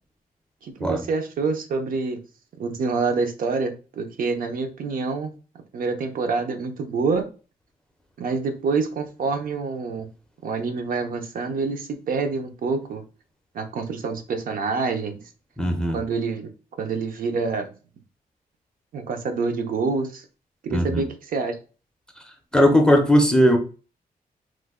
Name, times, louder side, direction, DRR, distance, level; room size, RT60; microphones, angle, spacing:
voice 1, 0.6-2.2 2.6-5.3 5.7-7.3 8.2-10.1 10.4-13.0 13.5-15.2 15.9-16.5 16.8-17.7 18.9-20.2 20.6-21.6, right 4 dB, 65° right, 0.6 m, -26 dB
voice 2, 15.6-16.0 20.7-21.0 22.5-23.6, equal, 5° left, 0.5 m, -18 dB
3.1 x 2.1 x 3.5 m
wide cardioid pair, 150°, 16 cm